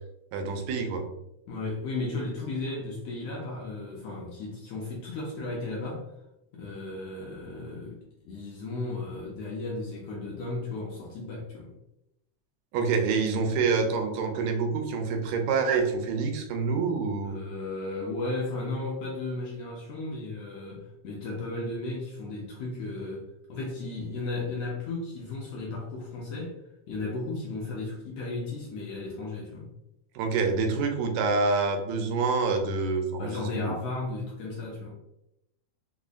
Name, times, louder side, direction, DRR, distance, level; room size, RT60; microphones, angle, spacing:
voice 1, 0.3-1.0 12.7-17.4 30.2-33.7, right 4 dB, 80° right, 4 dB, 1.8 m, -27 dB
voice 2, 1.5-6.1 6.5-11.7 17.2-26.6 26.9-29.7 33.2-34.9, left 2 dB, 80° left, -3 dB, 1.6 m, -35 dB
4.9 x 2.1 x 2.4 m, 0.83 s
omnidirectional pair, 3.3 m